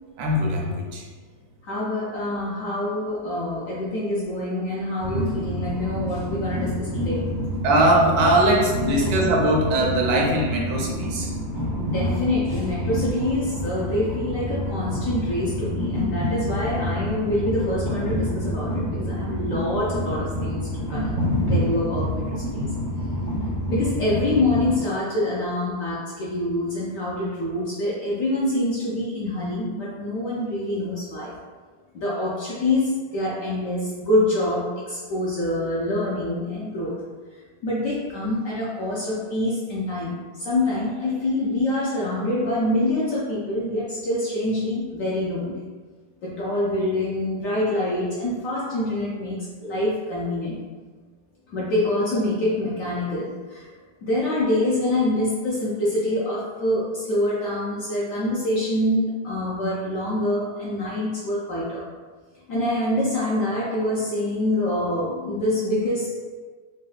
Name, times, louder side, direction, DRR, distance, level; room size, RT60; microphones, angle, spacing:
voice 1, 0.2-1.1 7.6-11.3, right 1 dB, 75° right, -1 dB, 1.2 m, -21 dB
voice 2, 1.6-7.3 11.8-22.7 23.7-31.4 31.9-36.9 37.6-45.6 46.2-50.6 51.5-53.7 54.0-61.8 62.5-66.1, left 1 dB, 70° left, -6 dB, 0.8 m, -26 dB
Train, 5.0-24.7, equal, 45° right, 0.6 m, -27 dB
4.1 x 2.1 x 2.3 m, 1.4 s
omnidirectional pair, 1.9 m